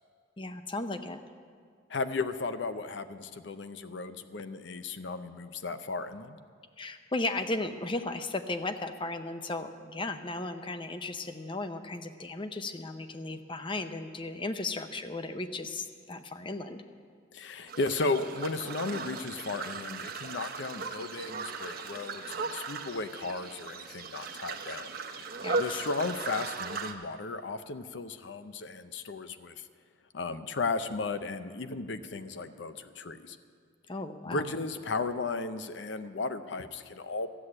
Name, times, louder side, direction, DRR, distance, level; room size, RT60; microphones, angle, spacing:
voice 1, 0.4-1.2 6.8-16.8 25.4-25.8 33.9-34.5, left 2 dB, 25° left, 9 dB, 0.6 m, -35 dB
voice 2, 1.9-6.4 17.3-25.3 25.6-29.6 30.1-33.4 34.3-37.3, left 3 dB, 65° left, 11 dB, 0.6 m, -35 dB
sound 1, 17.7-26.9, right 4 dB, 50° right, 0.9 m, -37 dB
13.5 x 8.1 x 8.7 m, 2.2 s
head